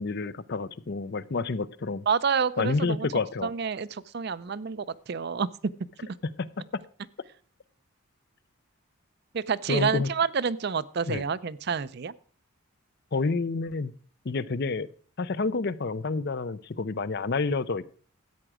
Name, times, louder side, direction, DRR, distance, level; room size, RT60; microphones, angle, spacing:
voice 1, 0.0-2.1 2.6-3.5 6.4-6.5 9.7-10.1 11.1-11.2 13.1-13.9 14.2-14.9 15.2-17.9, left 4 dB, 50° left, 16 dB, 0.5 m, -29 dB
voice 2, 2.1-3.1 3.4-5.5 9.3-12.1, right 6 dB, 50° right, 16 dB, 0.5 m, -28 dB
13.5 x 8.9 x 4.9 m, 0.43 s
head